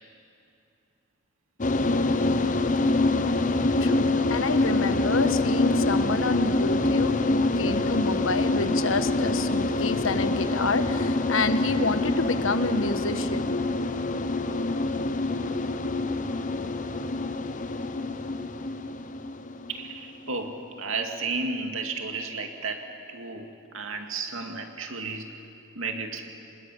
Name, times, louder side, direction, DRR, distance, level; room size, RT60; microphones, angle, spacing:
sound 1, 1.6-20.3, left 2 dB, 40° left, 0.9 m, -26 dB
voice 1, 3.8-13.5, left 3 dB, 80° left, 9 dB, 1.3 m, -28 dB
voice 2, 19.7-23.5 23.7-25.3 25.8-26.3, right 4 dB, 85° right, 4 dB, 2.4 m, -33 dB
26.0 x 20.0 x 8.6 m, 2.7 s
head